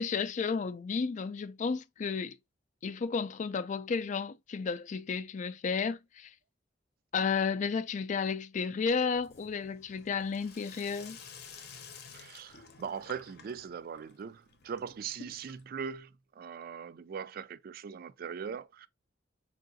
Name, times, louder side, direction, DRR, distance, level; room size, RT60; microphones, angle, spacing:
voice 1, 0.0-2.4 2.8-6.3 7.1-11.2, left 5 dB, 40° left, 0.3 m, -32 dB
Sink (filling or washing), 9.1-15.9, left 6 dB, 60° left, 0.7 m, -52 dB
voice 2, 12.1-18.9, right 6 dB, 55° right, 0.3 m, -40 dB
4.5 x 2.5 x 2.6 m
head